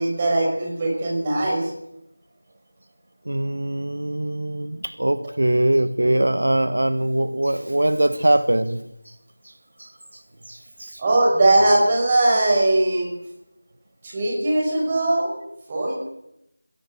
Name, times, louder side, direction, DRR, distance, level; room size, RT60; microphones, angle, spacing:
voice 1, 0.0-1.7 11.0-13.1 14.0-15.3 15.7-15.9, right 2 dB, 20° right, -1 dB, 5.9 m, -20 dB
voice 2, 3.2-9.1 9.4-9.5 9.8-11.0, right 1 dB, 75° right, 12 dB, 1.5 m, -22 dB
20.5 x 16.5 x 8.0 m, 0.82 s
figure-of-eight pair, 175°, 0 cm